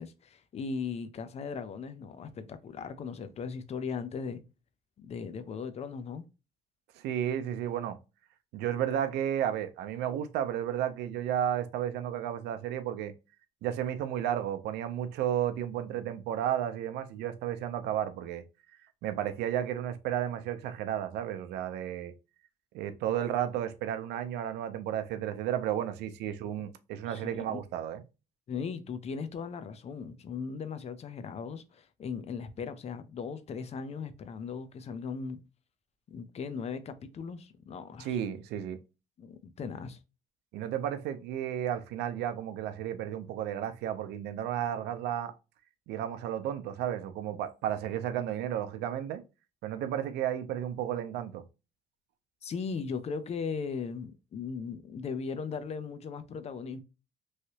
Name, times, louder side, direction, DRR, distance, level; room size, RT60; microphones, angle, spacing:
voice 1, 0.0-4.4 5.0-6.2 27.1-27.6 28.5-35.4 36.1-38.2 39.2-40.0 52.4-56.8, left 5 dB, 40° left, 0.5 m, -38 dB
voice 2, 7.0-8.0 8.5-13.1 13.6-18.4 19.0-22.1 22.7-28.0 38.0-38.8 40.5-45.3 45.9-49.2 49.6-51.4, right 10 dB, 85° right, 0.6 m, -33 dB
3.2 x 2.8 x 2.8 m
cardioid pair, 110°, 17 cm